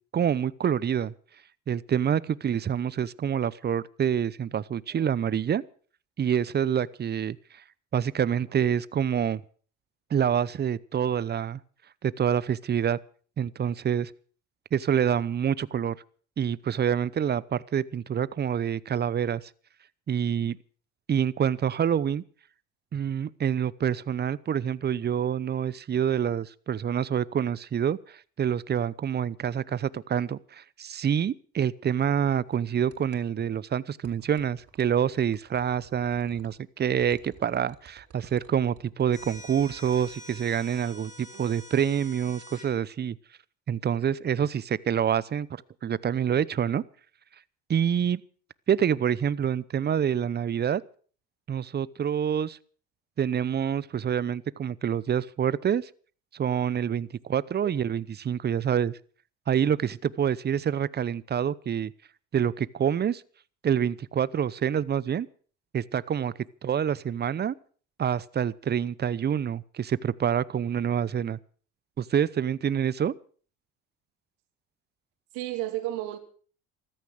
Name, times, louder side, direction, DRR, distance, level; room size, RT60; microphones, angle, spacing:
voice 1, 0.1-1.1 1.7-5.6 6.2-7.6 7.9-9.4 10.1-11.6 12.0-13.0 13.4-14.1 14.7-16.0 16.4-19.4 20.1-20.6 21.1-22.2 22.9-43.2 43.7-45.5 45.8-46.8 47.7-48.2 48.7-50.8 51.5-52.6 53.2-55.9 56.3-59.0 59.5-61.9 62.3-63.2 63.6-65.3 65.7-66.3 66.6-67.5 68.0-71.4 72.0-73.1, right 8 dB, 35° right, 0.8 m, -27 dB
sound 1, 32.1-33.3 34.0-36.6 37.0-40.2, right 7 dB, 50° right, 3.5 m, -55 dB
sound 2, 39.1-42.7, left 1 dB, 25° left, 7.9 m, -46 dB
voice 2, 75.3-76.2, right 15 dB, 85° right, 2.7 m, -32 dB
14.5 x 13.5 x 6.4 m
supercardioid pair, 80°, 30 cm